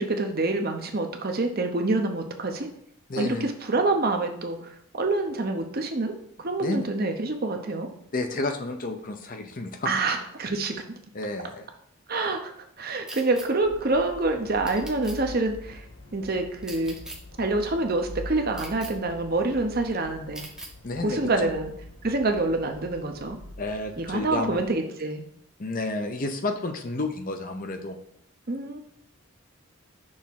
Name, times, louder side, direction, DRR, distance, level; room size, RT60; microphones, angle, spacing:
voice 1, 0.0-2.7 3.2-6.1 6.4-7.9 9.9-11.0 12.1-15.8 16.1-16.9 17.4-20.4 21.0-21.7 22.0-23.4 24.0-25.2 28.5-28.8, right 2 dB, 40° right, 5 dB, 0.8 m, -27 dB
voice 2, 3.1-3.5 6.6-6.8 8.1-9.9 11.1-11.7 20.8-21.5 23.6-24.6 25.6-28.0, left 2 dB, 40° left, 6 dB, 0.6 m, -31 dB
sound 1, 13.1-13.5 14.7-15.2 16.6-17.2 18.5-18.9 20.3-20.7, right 1 dB, 5° right, 0.8 m, -40 dB
sound 2, 13.6-24.7, left 1 dB, 60° left, 1.8 m, -44 dB
6.3 x 3.6 x 5.8 m, 0.67 s
head